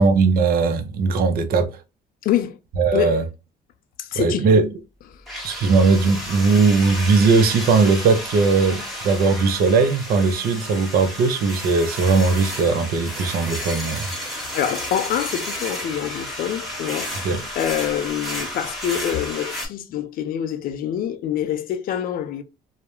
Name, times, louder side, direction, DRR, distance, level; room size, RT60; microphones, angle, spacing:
voice 1, 0.0-1.7 2.8-3.2 4.1-4.7 5.4-14.1 17.2-17.4, right 4 dB, 60° right, 0.6 m, -19 dB
voice 2, 2.2-2.6 2.9-3.2 4.0-4.5 5.1-5.2 14.2-22.4, left 10 dB, 60° left, 0.4 m, -26 dB
Angle Grinder Grinding, 5.3-19.7, equal, ahead, 1.0 m, -32 dB
2.3 x 2.0 x 2.9 m
cardioid pair, 110°, 17 cm